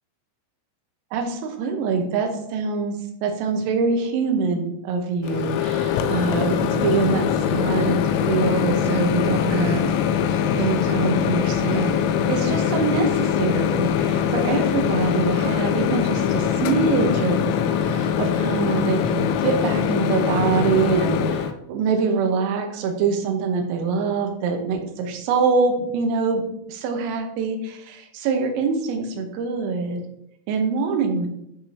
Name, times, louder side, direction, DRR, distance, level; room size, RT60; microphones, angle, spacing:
voice 1, 1.1-3.0 3.2-9.9 10.3-12.0 12.3-17.6 17.8-26.4 26.7-30.0 30.5-31.3, right 5 dB, 85° right, 3 dB, 3.7 m, -24 dB
Microwave oven, 5.2-21.5, left 8 dB, 85° left, 3.2 m, -22 dB
11.5 x 4.9 x 2.8 m, 0.78 s
omnidirectional pair, 5.9 m